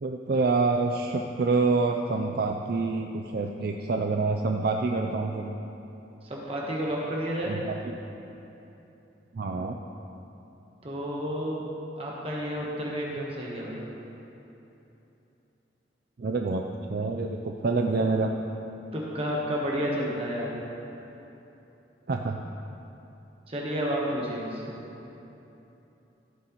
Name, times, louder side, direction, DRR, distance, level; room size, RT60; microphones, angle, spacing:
voice 1, 0.0-5.6 7.5-7.8 9.3-9.8 16.2-16.6 16.9-18.3 22.1-22.4, right 3 dB, 55° right, 2 dB, 0.4 m, -27 dB
voice 2, 6.2-7.5 10.8-11.6 12.0-13.9 18.9-20.5 23.5-24.8, equal, 30° right, -4 dB, 1.1 m, -31 dB
14.5 x 8.9 x 3.0 m, 3.0 s
head